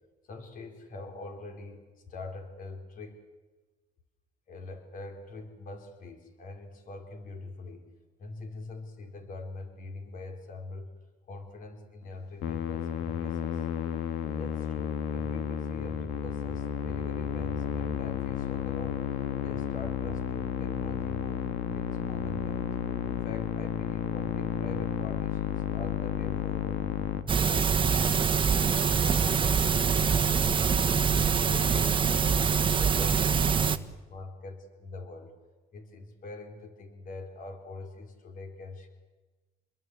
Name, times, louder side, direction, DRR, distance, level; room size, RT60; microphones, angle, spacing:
voice 1, 0.3-1.8 2.1-3.2 4.5-7.9 8.2-10.9 11.3-13.7 14.4-19.0 19.4-22.6 23.0-26.8 27.2-30.8 31.3-35.3 35.7-38.9, left 3 dB, 55° left, 5 dB, 4.7 m, -43 dB
Musical instrument, 12.4-27.2, left 9 dB, 90° left, 1.8 m, -32 dB
sound 1, 27.3-33.8, right 6 dB, 30° right, 1.3 m, -24 dB
28.0 x 21.5 x 8.1 m, 1.2 s
cardioid pair, 110°, 17 cm